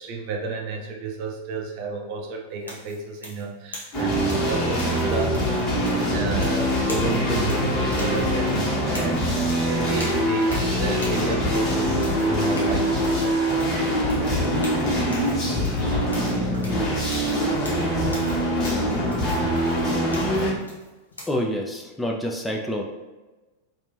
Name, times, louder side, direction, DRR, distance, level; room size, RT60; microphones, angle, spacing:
voice 1, 0.0-5.5 5.8-13.4, right 4 dB, 45° right, 1 dB, 0.5 m, -31 dB
sound 1, 2.6-21.3, left 1 dB, 75° left, 0.7 m, -42 dB
sound 2, 3.9-20.5, equal, 35° left, 1.3 m, -23 dB
voice 2, 21.3-22.8, equal, 5° left, 0 dB, 0.3 m, -27 dB
2.9 x 2.4 x 3.2 m, 1.2 s
figure-of-eight pair, 90°, 0 cm